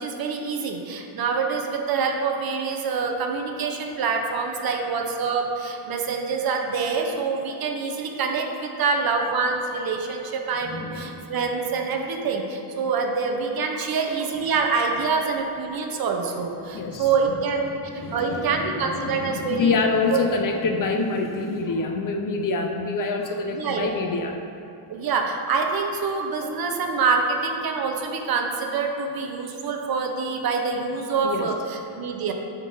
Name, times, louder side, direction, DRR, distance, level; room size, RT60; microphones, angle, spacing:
voice 1, 0.0-20.2 23.5-24.0 24.9-32.3, right 5 dB, 50° right, 3 dB, 0.7 m, -26 dB
voice 2, 10.6-11.3 13.7-13.9 15.9-16.0 16.7-17.1 17.7-24.4 31.2-31.5, left 4 dB, 45° left, 3 dB, 0.5 m, -26 dB
8.0 x 3.7 x 5.4 m, 2.7 s
cardioid pair, 165°, 49 cm